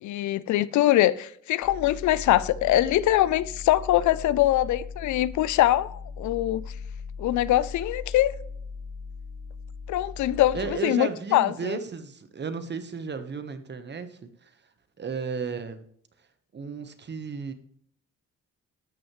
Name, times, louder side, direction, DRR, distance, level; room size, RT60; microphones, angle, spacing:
voice 1, 0.0-6.6 7.2-8.3 9.9-11.8, left 14 dB, 70° left, 0.5 m, -23 dB
sound 1, 1.6-10.7, left 5 dB, 25° left, 2.1 m, -39 dB
voice 2, 10.5-14.5 15.0-15.8 16.5-17.5, right 5 dB, 35° right, 1.1 m, -34 dB
13.5 x 6.3 x 3.1 m
cardioid pair, 90°, 30 cm